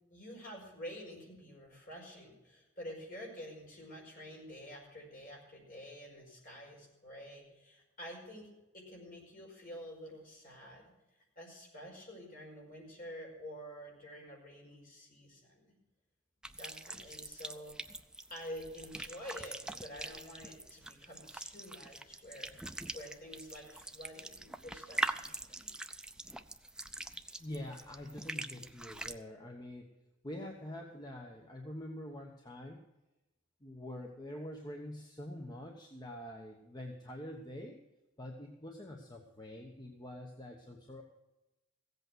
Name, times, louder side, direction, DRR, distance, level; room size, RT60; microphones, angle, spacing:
voice 1, 0.1-10.9 11.3-15.7 16.5-17.7 18.3-25.7, equal, 45° left, -1 dB, 4.9 m, -49 dB
sound 1, 16.4-29.2, right 1 dB, 5° right, 0.4 m, -43 dB
voice 2, 27.4-29.9 30.2-32.8 33.6-37.8 38.2-41.0, left 1 dB, 20° left, 1 dB, 1.2 m, -45 dB
16.0 x 8.2 x 6.2 m, 0.99 s
head